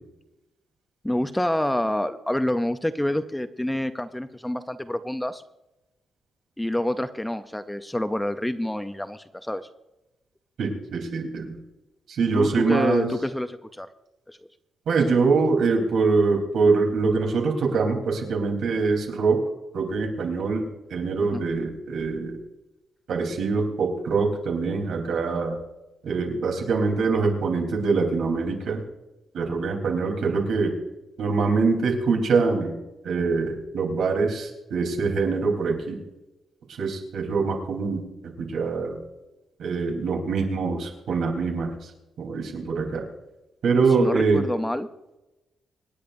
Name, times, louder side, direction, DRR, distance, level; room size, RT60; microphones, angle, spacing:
voice 1, 1.0-5.4 6.6-9.7 12.3-13.9 14.3-14.4 21.3-21.4 44.0-44.9, left 1 dB, 5° left, 10 dB, 0.5 m, -27 dB
voice 2, 10.6-11.6 12.1-13.1 14.9-19.4 19.7-20.6 20.9-22.4 23.1-25.6 26.0-28.8 29.3-30.7 31.2-32.7 33.0-36.0 36.8-39.0 39.6-41.7 42.2-43.0 43.6-44.4, right 4 dB, 70° right, 1 dB, 3.5 m, -24 dB
26.0 x 10.5 x 2.6 m, 0.99 s
cardioid pair, 140°, 0 cm